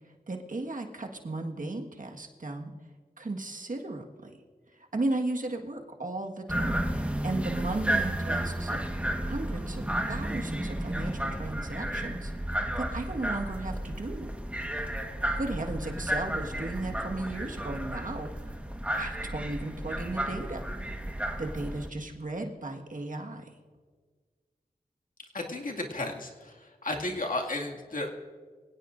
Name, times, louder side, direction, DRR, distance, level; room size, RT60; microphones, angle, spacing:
voice 1, 0.3-2.7 3.2-4.3 4.7-8.8 9.2-12.3 12.8-14.3 15.4-18.5 18.9-20.6 21.4-23.5, right 2 dB, 55° right, 2 dB, 1.7 m, -35 dB
sound 1, 6.5-21.9, right 1 dB, 10° right, 1.4 m, -32 dB
voice 2, 25.3-26.5 26.8-28.1, left 2 dB, 55° left, -1 dB, 2.3 m, -33 dB
24.5 x 17.0 x 2.6 m, 1.5 s
wide cardioid pair, 65°, 16 cm